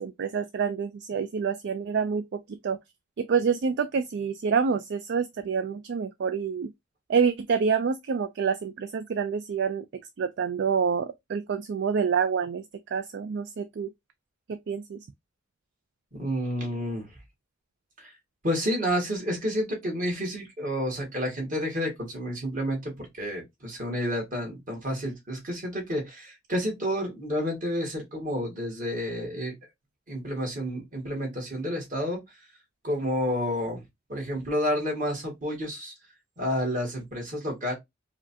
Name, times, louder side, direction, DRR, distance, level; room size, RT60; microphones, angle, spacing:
voice 1, 0.0-2.8 3.2-6.7 7.1-9.8 10.2-12.6 12.9-13.9 14.5-15.0, right 6 dB, 55° right, 0.4 m, -27 dB
voice 2, 16.1-17.1 18.0-18.1 18.4-29.5 30.1-32.2 32.8-33.8 34.1-35.9 36.4-37.7, equal, 40° right, 1.8 m, -30 dB
4.8 x 2.3 x 2.7 m
head